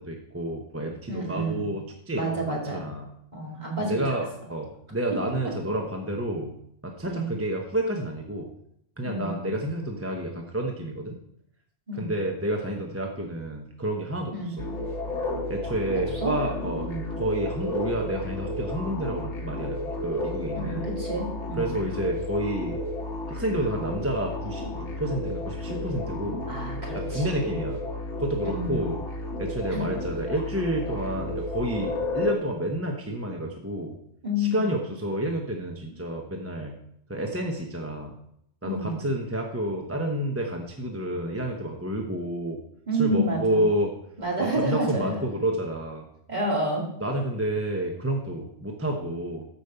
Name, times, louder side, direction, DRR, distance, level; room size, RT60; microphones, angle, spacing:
voice 1, 0.0-3.1 3.8-6.5 6.8-8.5 9.0-11.2 12.0-14.6 15.5-16.9 17.2-20.9 21.6-22.8 23.3-26.5 26.9-27.8 28.2-29.0 29.4-34.0 34.4-36.8 37.1-38.1 38.6-42.6 43.0-43.9 44.4-46.1 47.0-49.5, right 1 dB, 15° right, 1 dB, 0.8 m, -30 dB
voice 2, 1.1-1.7 2.1-2.8 3.3-4.2 7.0-7.3 9.0-9.3 11.9-12.1 14.3-14.6 15.9-16.3 16.8-17.0 20.5-21.7 26.5-27.5 28.4-28.9 29.7-29.9 34.2-34.7 38.6-39.0 42.9-43.7 44.2-45.1 46.3-46.8, right 1 dB, 35° right, -3 dB, 2.5 m, -29 dB
sound 1, 14.6-32.3, left 1 dB, 75° left, 1.4 m, -32 dB
8.8 x 5.1 x 6.8 m, 0.73 s
omnidirectional pair, 1.2 m